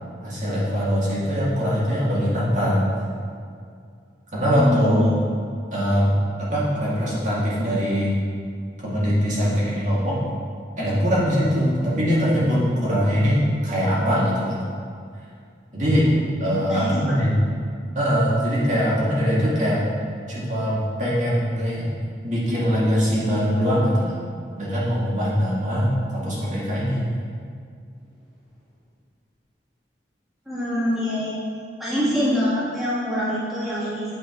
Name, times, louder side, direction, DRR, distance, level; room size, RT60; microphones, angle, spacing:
voice 1, 0.2-3.0 4.3-5.1 5.7-6.1 6.4-8.1 8.8-10.2 10.8-14.6 15.7-16.1 16.4-17.3 17.9-19.8 20.3-21.9 22.2-24.2 24.5-27.1, equal, 45° right, -8 dB, 1.9 m, -22 dB
voice 2, 4.5-5.1 16.7-16.9 30.5-31.4 31.8-34.0, equal, ahead, -11 dB, 1.7 m, -25 dB
8.6 x 5.0 x 4.4 m, 2.2 s
head